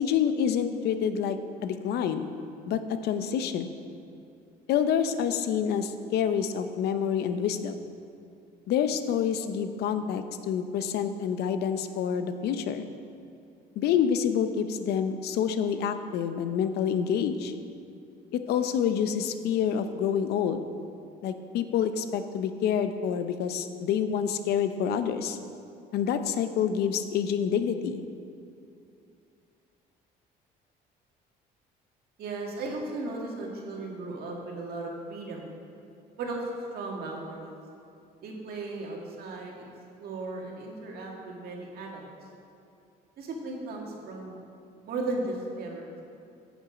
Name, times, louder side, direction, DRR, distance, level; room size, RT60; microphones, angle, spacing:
voice 1, 0.0-2.3 2.7-3.7 4.7-7.8 8.7-12.9 13.8-17.5 18.3-20.6 21.2-25.4 25.9-28.0, left 8 dB, 75° left, 9 dB, 0.6 m, -27 dB
voice 2, 32.2-35.5 36.2-36.5 36.7-37.6 38.2-39.7 40.0-42.1 43.2-44.4 44.8-45.9, right 2 dB, 65° right, -1 dB, 1.9 m, -36 dB
9.8 x 7.1 x 5.0 m, 2.6 s
cardioid pair, 110°, 17 cm